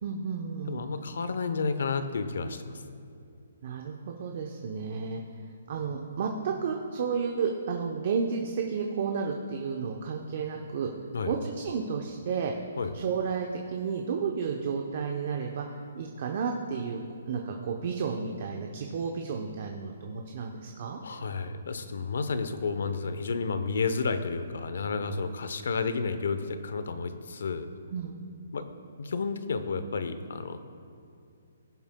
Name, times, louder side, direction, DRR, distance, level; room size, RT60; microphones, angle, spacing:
voice 1, 0.0-0.8 3.6-5.2 5.7-10.9 11.2-12.5 12.9-21.0 27.9-28.2, right 5 dB, 50° right, 2 dB, 0.8 m, -32 dB
voice 2, 0.7-2.8 11.1-11.4 12.8-12.9 21.0-27.7 28.5-28.6 29.0-30.6, left 4 dB, 70° left, 10 dB, 0.8 m, -31 dB
18.0 x 7.0 x 2.3 m, 2.5 s
hypercardioid pair, 155°, 0 cm